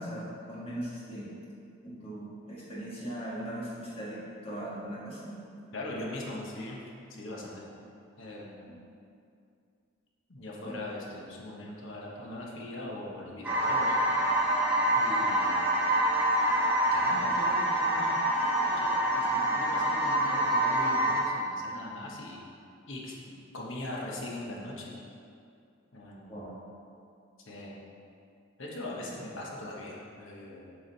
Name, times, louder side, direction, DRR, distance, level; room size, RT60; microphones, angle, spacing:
voice 1, 0.0-1.3 1.8-5.3 10.6-10.7 26.3-26.6, right 1 dB, 25° left, -7 dB, 1.7 m, -39 dB
voice 2, 5.7-6.8 7.2-7.6 8.2-8.6 10.3-14.0 14.9-15.6 16.9-22.4 22.9-23.1 23.5-24.9 25.9-26.4 27.5-27.7 28.6-30.7, left 1 dB, 65° left, -3 dB, 1.2 m, -40 dB
sound 1, 13.4-21.2, right 1 dB, 10° right, 1.1 m, -26 dB
8.0 x 4.9 x 4.1 m, 2.4 s
head